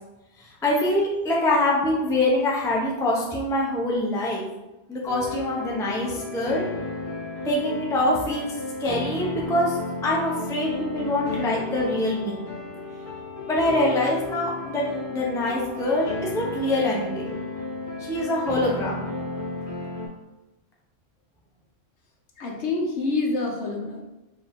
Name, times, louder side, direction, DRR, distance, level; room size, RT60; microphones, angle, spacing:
voice 1, 0.6-4.4 4.9-6.7 7.4-8.5 8.8-9.8 10.0-12.4 13.5-17.3 18.0-19.1, left 1 dB, 5° left, -3 dB, 0.5 m, -24 dB
sound 1, 5.0-20.1, left 2 dB, 30° left, 1.0 m, -33 dB
voice 2, 22.4-24.0, left 3 dB, 65° left, 0 dB, 1.0 m, -27 dB
4.2 x 2.7 x 3.5 m, 1.0 s
omnidirectional pair, 1.3 m